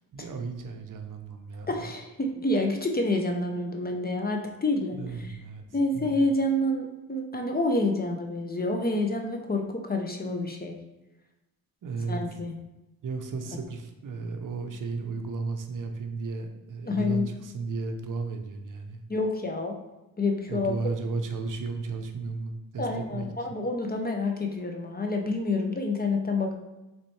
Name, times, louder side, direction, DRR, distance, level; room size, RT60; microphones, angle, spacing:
voice 1, 0.1-1.9 4.9-5.6 5.9-6.2 11.8-12.2 13.0-19.0 20.5-23.3, right 4 dB, 55° right, 5 dB, 0.6 m, -34 dB
voice 2, 1.7-5.0 5.7-10.8 12.1-12.5 16.9-17.3 19.1-19.8 20.2-20.7 22.8-26.5, left 2 dB, 25° left, 3 dB, 0.5 m, -28 dB
4.0 x 3.2 x 3.1 m, 0.99 s
cardioid pair, 70°, 38 cm